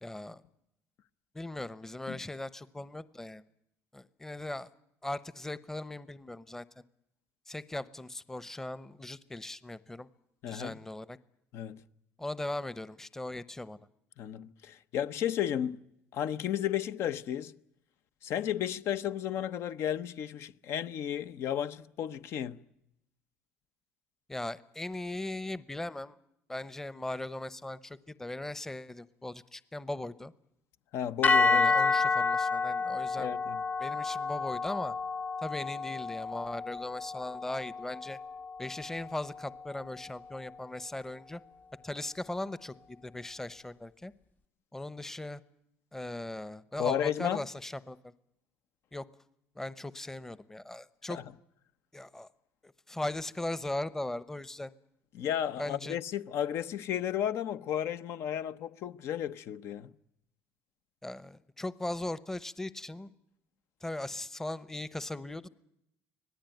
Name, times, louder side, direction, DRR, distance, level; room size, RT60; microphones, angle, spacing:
voice 1, 0.0-0.4 1.3-3.4 3.9-4.7 5.0-6.8 7.5-10.1 10.5-11.2 12.2-13.8 24.3-26.2 26.5-30.3 31.5-33.3 33.8-34.9 35.4-38.2 38.6-41.4 41.8-44.1 44.7-45.4 45.9-48.1 48.9-49.0 49.6-51.2 51.9-52.3 52.6-54.7 55.6-56.0 61.0-63.1 63.8-65.5, left 1 dB, 10° left, 0.9 m, -38 dB
voice 2, 10.4-10.7 11.5-11.8 14.2-15.8 16.1-17.5 18.2-22.6 30.9-31.7 33.2-33.6 46.8-47.4 51.1-51.2 55.1-59.9, left 10 dB, 65° left, 0.9 m, -33 dB
sound 1, 31.2-39.5, left 4 dB, 35° left, 0.9 m, -30 dB
25.5 x 18.0 x 9.2 m
cardioid pair, 105°, 5 cm